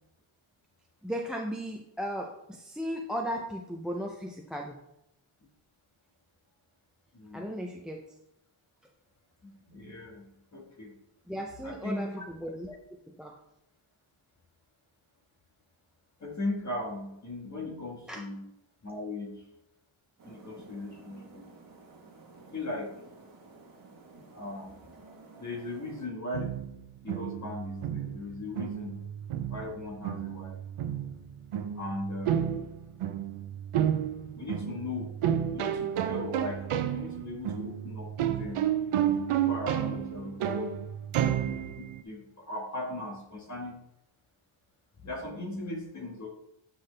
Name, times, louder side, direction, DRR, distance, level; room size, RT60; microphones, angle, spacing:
voice 1, 1.0-4.8 7.3-8.0 11.3-12.8 13.2-13.4 18.1-18.3, equal, ahead, 2 dB, 0.4 m, -36 dB
voice 2, 7.1-7.5 9.4-10.3 10.5-10.9 11.6-12.2 16.2-18.5 18.8-19.4 20.2-21.5 22.5-22.9 24.3-24.7 25.4-26.5 27.0-29.0 29.5-30.6 31.7-32.4 34.3-35.1 35.5-38.7 39.2-40.7 41.4-43.8 45.0-46.3, left 2 dB, 35° left, -1 dB, 1.5 m, -38 dB
sound 1, 20.2-26.1, right 3 dB, 40° right, 1.2 m, -53 dB
sound 2, 26.3-42.0, right 10 dB, 90° right, 0.7 m, -31 dB
8.3 x 5.8 x 3.3 m, 0.83 s
wide cardioid pair, 175°, 49 cm